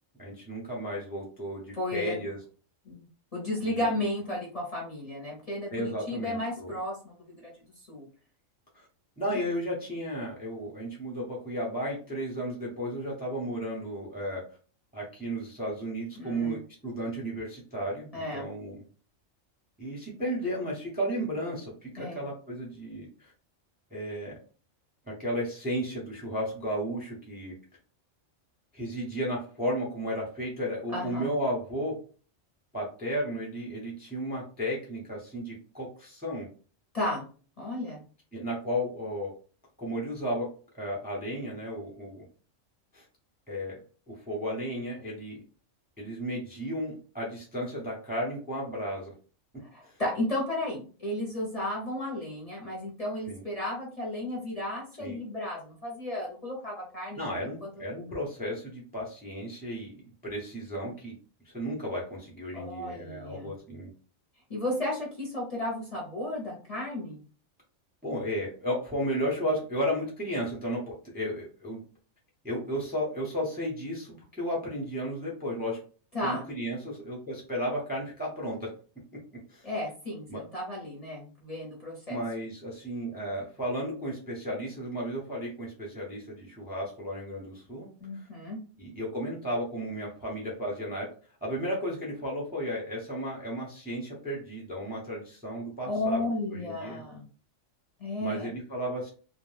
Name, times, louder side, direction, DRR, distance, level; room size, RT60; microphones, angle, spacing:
voice 1, 0.2-2.4 3.6-3.8 5.7-6.7 8.7-8.9 9.2-14.4 14.9-18.7 19.8-23.3 23.9-24.4 25.1-27.5 28.7-32.0 32.7-36.5 38.3-39.3 39.8-42.2 42.9-43.0 43.5-43.8 44.1-45.4 46.0-49.1 49.8-49.9 53.3-53.4 55.0-55.2 57.2-59.9 60.2-61.1 61.4-63.9 68.0-71.8 72.4-75.8 76.2-78.7 79.5-79.7 80.3-80.4 82.1-87.9 88.1-88.3 88.8-91.1 91.4-96.3 96.5-97.0 98.2-99.1, equal, 10° right, -2 dB, 0.6 m, -34 dB
voice 2, 1.7-2.2 2.8-3.1 3.3-7.5 7.9-8.0 16.2-16.6 18.1-18.5 22.0-22.2 30.9-31.3 36.9-37.2 37.6-38.0 49.6-57.2 57.6-57.7 62.5-63.5 64.5-67.2 76.1-76.5 79.6-82.2 88.0-88.6 95.9-97.3 98.0-98.5, left 1 dB, 35° left, -4 dB, 0.8 m, -33 dB
2.4 x 2.2 x 3.2 m, 0.38 s
omnidirectional pair, 1.3 m